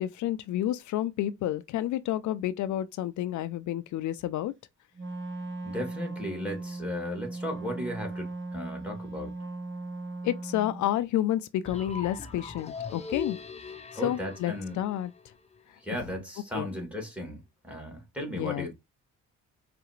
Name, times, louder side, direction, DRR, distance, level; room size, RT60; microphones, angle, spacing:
voice 1, 0.0-4.5 10.2-13.4 14.0-15.1 16.5-16.7 18.3-18.7, left 12 dB, 70° left, 0.5 m, -30 dB
Wind instrument woodwind instrument, 4.9-10.9, right 2 dB, 40° right, 1.3 m, -38 dB
voice 2, 5.6-9.3 14.0-14.8 15.8-17.4 17.6-18.7, left 1 dB, 5° right, 2.5 m, -36 dB
sound 1, 11.6-15.6, left 5 dB, 20° left, 0.8 m, -40 dB
4.8 x 3.4 x 3.1 m
cardioid pair, 90°, 30 cm